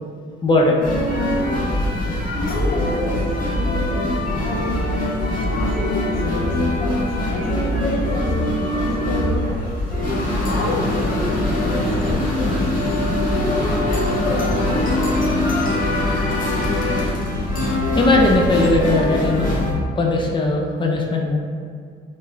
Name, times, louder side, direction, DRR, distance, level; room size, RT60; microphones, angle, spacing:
voice 1, 0.4-0.8 5.3-5.4 17.9-19.5 20.0-21.4, left 2 dB, 25° left, 0 dB, 0.6 m, -18 dB
sound 1, 0.8-19.7, left 1 dB, 40° left, 1.2 m, -22 dB
voice 2, 2.3-4.8 5.5-9.6 10.4-12.6 13.3-15.1, left 2 dB, 85° left, -2 dB, 0.8 m, -30 dB
5.2 x 2.6 x 3.3 m, 2.1 s
cardioid pair, 90°, 20 cm